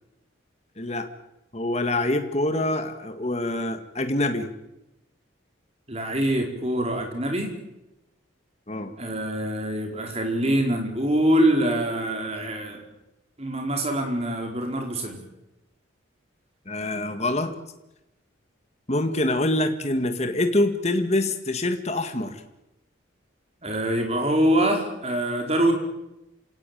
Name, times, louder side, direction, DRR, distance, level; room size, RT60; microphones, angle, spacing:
voice 1, 0.8-1.1 1.5-4.5 8.7-8.9 16.7-17.5 18.9-22.4, left 1 dB, 30° left, 7 dB, 1.9 m, -25 dB
voice 2, 5.9-7.5 9.0-12.8 13.4-15.2 23.6-25.7, right 1 dB, 30° right, 3 dB, 4.7 m, -24 dB
28.0 x 18.0 x 9.2 m, 0.93 s
head